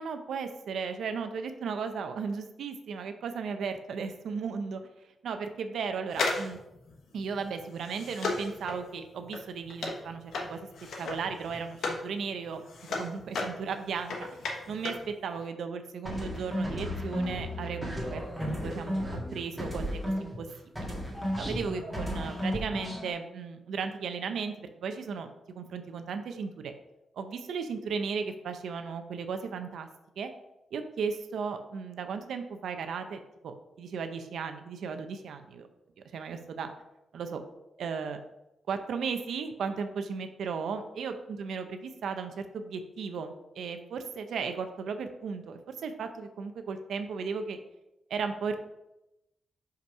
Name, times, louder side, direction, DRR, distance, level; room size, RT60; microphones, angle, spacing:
voice 1, 0.0-4.8 5.2-6.6 7.1-10.7 11.0-14.2 14.7-19.0 19.3-20.5 20.8-21.0 21.4-26.7 27.2-29.9 30.2-30.3 30.7-35.7 36.1-36.7 37.1-37.4 37.8-38.2 38.7-47.6 48.1-48.6, right 5 dB, 80° right, 7 dB, 0.7 m, -35 dB
sound 1, 6.1-12.1 12.4-15.1 15.4-15.5, left 3 dB, 80° left, 1.2 m, -35 dB
sound 2, 16.1-20.5 20.8-23.1, equal, ahead, 1.9 m, -34 dB
5.3 x 5.2 x 5.3 m, 0.93 s
wide cardioid pair, 160°, 0 cm